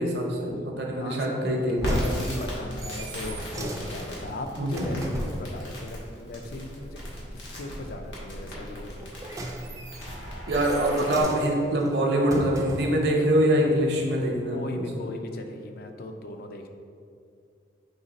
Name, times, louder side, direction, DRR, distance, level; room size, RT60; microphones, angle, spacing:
voice 1, 0.0-0.5 0.8-2.2 4.6-4.9 10.5-14.9, right 1 dB, 60° right, 0 dB, 0.7 m, -24 dB
voice 2, 0.9-1.4 2.2-7.0 7.3-9.1 14.5-16.7, left 2 dB, 55° left, 5 dB, 0.4 m, -38 dB
sound 1, 1.4-5.5 8.9-13.1 13.8-13.9, right 1 dB, 20° right, 0.3 m, -37 dB
Crackle, 1.8-11.2, equal, 90° left, 1.2 m, -36 dB
3.9 x 3.2 x 3.9 m, 2.4 s
head